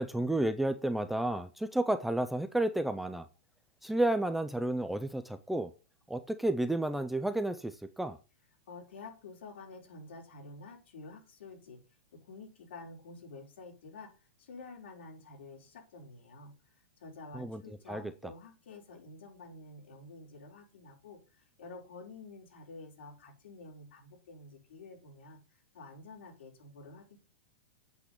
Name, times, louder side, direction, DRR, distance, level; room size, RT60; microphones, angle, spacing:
voice 1, 0.0-3.3 3.8-5.7 6.1-8.2 17.3-18.0, right 1 dB, ahead, 0.4 m, -31 dB
voice 2, 8.7-11.8 12.1-16.5 17.0-27.2, left 3 dB, 70° left, 4.8 m, -50 dB
8.3 x 7.4 x 6.6 m
supercardioid pair, 165°, 7 cm